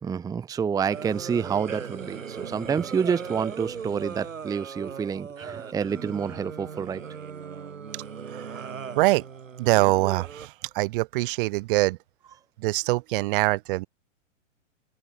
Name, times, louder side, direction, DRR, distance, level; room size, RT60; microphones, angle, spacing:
voice 1, 0.0-7.0, right 6 dB, 10° right, 0.9 m, -28 dB
sound 1, 0.9-10.5, right 6 dB, 85° right, 3.2 m, -38 dB
voice 2, 9.6-12.0 12.6-13.9, right 20 dB, 45° right, 1.2 m, -24 dB
hypercardioid pair, 120°, 38 cm